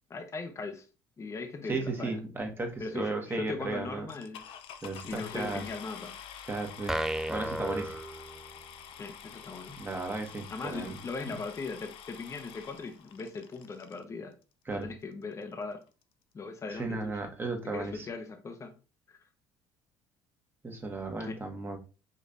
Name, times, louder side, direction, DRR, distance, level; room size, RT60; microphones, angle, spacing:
voice 1, 0.1-0.9 1.2-2.2 2.8-4.4 5.0-6.1 8.9-9.7 10.5-14.4 14.7-15.8 16.3-17.3 17.7-18.7 19.1-19.2 21.2-21.4, left 4 dB, 30° left, 5 dB, 0.8 m, -39 dB
voice 2, 1.7-4.1 4.8-5.6 6.5-7.0 7.3-8.0 9.8-10.9 11.2-11.4 14.7-14.9 16.7-18.1 20.6-21.8, right 3 dB, 20° right, 3 dB, 1.3 m, -35 dB
sound 1, 4.1-14.0 14.8-14.9 15.4-15.5 15.7-16.0, left 8 dB, 65° left, 0.6 m, -48 dB
sound 2, 6.9-8.8, right 1 dB, 5° right, 0.3 m, -34 dB
5.3 x 3.1 x 2.6 m, 0.33 s
supercardioid pair, 75°, 10 cm